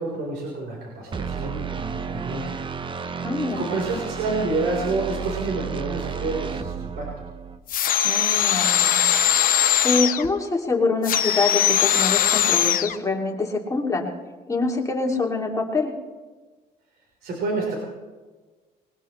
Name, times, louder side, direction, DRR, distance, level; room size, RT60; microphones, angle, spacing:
voice 1, 0.0-2.4 3.6-7.1 17.2-17.8, right 3 dB, 75° right, -2 dB, 4.2 m, -28 dB
sound 1, 1.1-7.6, right 6 dB, 30° right, 0.8 m, -32 dB
voice 2, 3.2-3.6 8.0-9.0 9.4-14.1 14.5-15.9, left 3 dB, 20° left, 0 dB, 2.7 m, -25 dB
sound 2, 7.7-10.3 11.0-13.0, left 10 dB, 55° left, 1.0 m, -20 dB
21.0 x 20.0 x 3.2 m, 1.3 s
cardioid pair, 110°, 17 cm